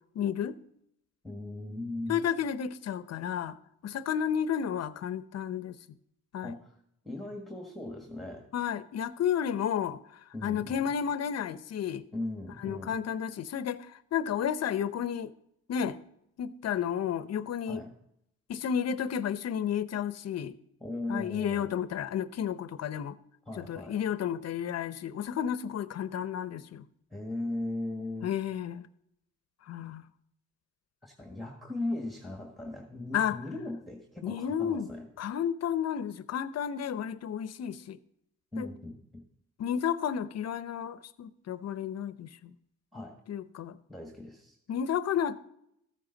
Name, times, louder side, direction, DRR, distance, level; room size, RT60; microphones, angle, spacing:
voice 1, 0.1-0.6 2.1-3.6 3.8-5.8 6.3-6.5 8.5-10.0 10.4-12.0 12.6-15.3 15.7-16.0 16.4-17.8 18.5-20.6 21.1-23.1 23.6-26.9 28.2-28.9 29.7-30.0 33.1-33.4 34.2-34.9 35.2-38.0 38.6-38.7 39.6-42.5 43.3-43.8 44.7-45.4, left 8 dB, 55° left, 0.7 m, -32 dB
voice 2, 1.2-2.2 6.4-6.8 7.0-8.4 10.3-10.8 12.1-13.0 17.7-17.9 20.8-21.7 23.5-24.0 27.1-28.3 31.0-35.1 38.5-39.2 42.9-43.2 43.9-44.6, left 2 dB, ahead, 1.6 m, -38 dB
14.0 x 9.0 x 3.9 m
cardioid pair, 90°, 30 cm